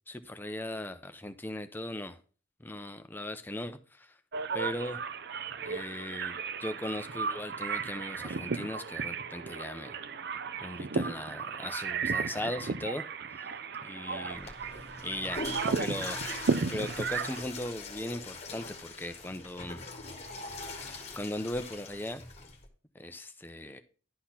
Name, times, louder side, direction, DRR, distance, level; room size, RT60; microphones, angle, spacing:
voice 1, 0.1-2.2 2.6-4.1 4.5-5.0 5.6-10.0 10.6-13.0 13.4-13.5 13.8-14.5 15.0-16.2 16.7-19.8 20.7-22.2 22.9-23.8, left 1 dB, 10° left, 0.5 m, -38 dB
sound 1, 4.3-17.4, right 5 dB, 55° right, 0.5 m, -34 dB
Water / Toilet flush, 14.3-22.7, left 3 dB, 30° left, 1.5 m, -42 dB
11.5 x 4.2 x 5.8 m
head